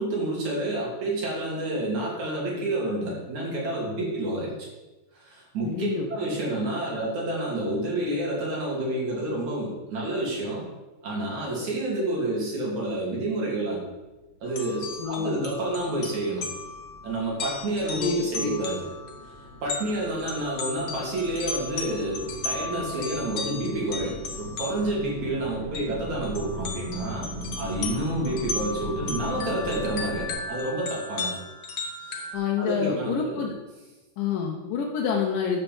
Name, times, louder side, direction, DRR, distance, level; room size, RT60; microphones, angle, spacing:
voice 1, 0.0-4.7 5.2-10.6 11.0-13.8 14.4-16.4 17.0-18.8 19.6-27.3 27.6-31.3 32.0-32.3 32.6-33.4, right 1 dB, 50° right, -4 dB, 4.3 m, -29 dB
voice 2, 5.6-6.1 15.0-15.5 17.9-18.5 32.3-33.5 34.2-35.6, left 6 dB, 70° left, -1 dB, 2.6 m, -28 dB
sound 1, 14.5-25.1 25.7-25.9 26.2-32.3, left 4 dB, 55° left, 1.6 m, -36 dB
sound 2, 15.0-30.3, right 1 dB, 15° right, 3.5 m, -39 dB
12.5 x 5.8 x 7.2 m, 1.1 s
omnidirectional pair, 4.3 m